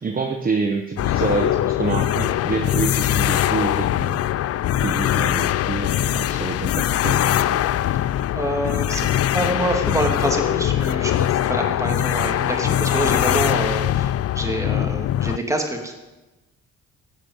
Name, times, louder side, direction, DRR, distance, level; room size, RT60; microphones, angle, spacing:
voice 1, 0.0-4.5 4.8-7.6, right 4 dB, 30° right, 4 dB, 1.2 m, -27 dB
sound 1, 1.0-15.4, left 12 dB, 55° left, 0.5 m, -22 dB
voice 2, 8.3-15.9, right 1 dB, 10° right, 2 dB, 2.8 m, -26 dB
17.0 x 6.7 x 7.9 m, 1.1 s
cardioid pair, 90°, 30 cm